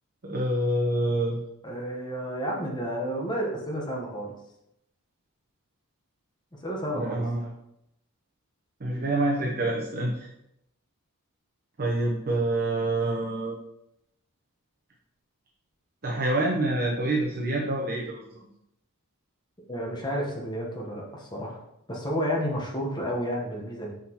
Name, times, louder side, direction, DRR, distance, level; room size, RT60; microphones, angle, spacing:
voice 1, 0.2-1.4 6.9-7.5 8.8-10.3 11.8-13.6 16.0-18.2, right 1 dB, 45° right, -2 dB, 0.9 m, -27 dB
voice 2, 1.6-4.3 6.6-7.2 19.7-21.6 21.9-23.9, equal, 20° left, -1 dB, 1.1 m, -31 dB
6.1 x 5.8 x 2.9 m, 0.80 s
head